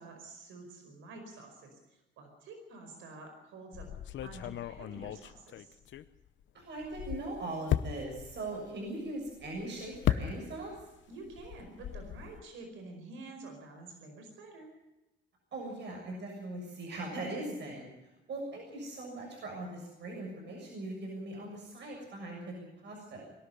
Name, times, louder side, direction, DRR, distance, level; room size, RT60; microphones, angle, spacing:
voice 1, 0.0-3.9 4.2-5.7 11.1-14.7, right 3 dB, 90° right, 4 dB, 4.9 m, -49 dB
sound 1, 3.7-6.4 6.8-10.8 11.1-12.4, left 11 dB, 70° left, 0.9 m, -36 dB
voice 2, 6.5-10.7 15.5-17.9 18.3-23.3, right 2 dB, 60° right, 0 dB, 7.0 m, -40 dB
22.0 x 13.0 x 9.9 m, 1.0 s
cardioid pair, 90°, 20 cm